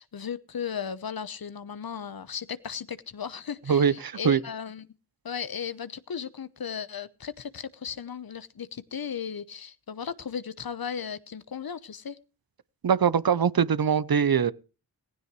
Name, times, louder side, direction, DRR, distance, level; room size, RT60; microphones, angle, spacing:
voice 1, 0.0-4.9 5.2-12.2, left 7 dB, 65° left, 1.0 m, -36 dB
voice 2, 3.7-4.4 12.8-14.5, right 7 dB, 65° right, 0.8 m, -22 dB
16.0 x 16.0 x 3.1 m
cardioid pair, 45°, 39 cm